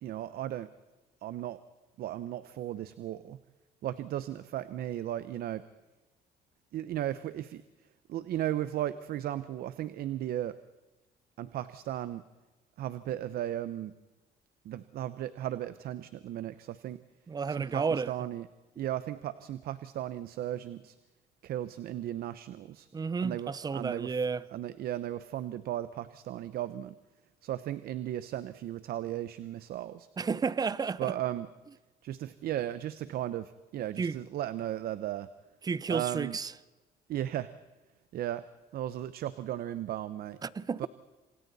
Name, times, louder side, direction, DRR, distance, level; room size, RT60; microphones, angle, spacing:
voice 1, 0.0-0.7 1.2-1.6 2.0-3.4 3.8-5.6 6.7-7.6 8.1-10.6 11.4-12.2 12.8-13.9 14.6-17.0 17.5-18.5 18.8-20.9 21.4-22.9 23.2-24.2 24.5-26.9 27.4-30.1 31.0-31.5 32.0-35.3 35.9-36.4 37.1-37.5 38.1-38.4 38.7-40.4 40.8-40.9, right 12 dB, 65° right, 0.8 m, -35 dB
voice 2, 17.3-18.1 22.9-24.4 30.2-31.1 34.0-34.2 35.6-36.5 40.4-40.9, right 5 dB, 25° right, 0.6 m, -31 dB
27.0 x 27.0 x 4.1 m
cardioid pair, 110°, 17 cm